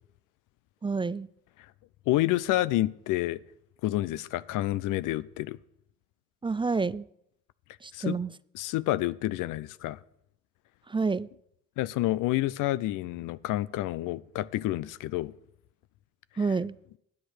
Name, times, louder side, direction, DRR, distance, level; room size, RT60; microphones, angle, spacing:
voice 1, 0.8-1.3 6.4-7.1 7.8-8.3 10.9-11.3 16.4-16.8, right 4 dB, 15° right, 0.3 m, -28 dB
voice 2, 2.1-3.4 3.8-5.6 7.9-8.2 8.5-10.0 11.8-15.3, left 16 dB, 80° left, 0.5 m, -29 dB
12.0 x 8.0 x 6.5 m
supercardioid pair, 55°, 31 cm